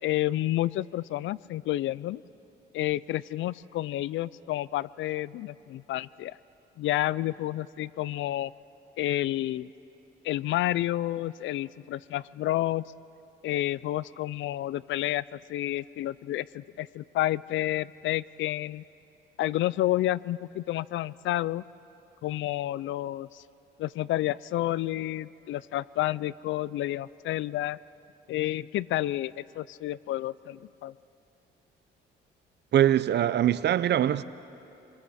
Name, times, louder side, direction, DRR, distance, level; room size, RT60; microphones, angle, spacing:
voice 1, 0.0-2.2 2.7-6.4 6.8-8.5 9.0-9.7 10.2-12.8 13.4-18.8 19.4-21.6 22.2-23.4 23.8-27.8 28.3-30.9, left 14 dB, 75° left, 0.4 m, -30 dB
voice 2, 32.7-34.2, right 11 dB, 60° right, 0.6 m, -23 dB
28.5 x 21.5 x 4.3 m
cardioid pair, 90°, 20 cm